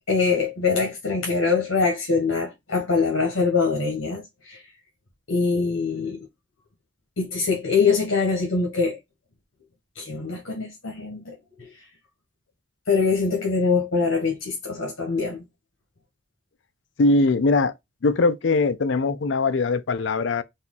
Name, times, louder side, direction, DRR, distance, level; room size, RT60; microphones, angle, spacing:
voice 1, 0.1-4.6 5.3-6.3 7.2-9.0 9.9-11.7 12.9-15.4, left 4 dB, 85° left, 1.2 m, -23 dB
voice 2, 17.0-17.7 18.0-20.4, left 3 dB, 65° left, 0.5 m, -21 dB
4.2 x 2.4 x 3.8 m
head